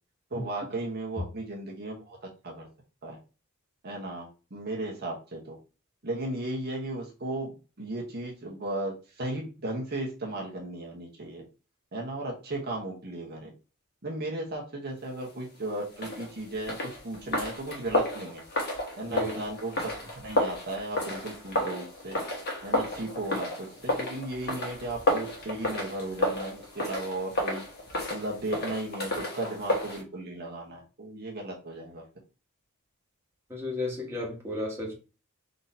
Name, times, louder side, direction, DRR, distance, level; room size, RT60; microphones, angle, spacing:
voice 1, 0.3-2.2 2.4-2.7 3.0-3.2 3.8-5.6 6.0-7.5 7.8-11.4 11.9-13.5 14.0-18.4 19.0-22.2 22.6-27.6 28.1-32.0, right 2 dB, 45° right, 1.1 m, -35 dB
sound 1, 15.9-30.0, left 1 dB, 45° left, 1.4 m, -32 dB
voice 2, 33.5-34.9, left 2 dB, 10° right, 1.5 m, -33 dB
4.0 x 3.0 x 4.2 m
head